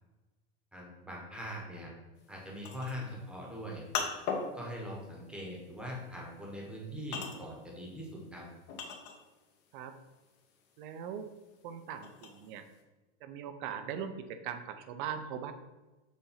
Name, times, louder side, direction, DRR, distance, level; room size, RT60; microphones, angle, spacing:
voice 1, 0.7-1.9 2.3-3.8 4.5-8.5, equal, 5° right, -2 dB, 1.0 m, -42 dB
sound 1, 2.2-9.5 9.9-12.8, left 5 dB, 30° left, 0.7 m, -40 dB
voice 2, 10.8-11.3 11.6-12.7 13.2-15.5, right 8 dB, 45° right, 9 dB, 0.6 m, -40 dB
7.2 x 2.6 x 5.6 m, 1.1 s
supercardioid pair, 160°, 35 cm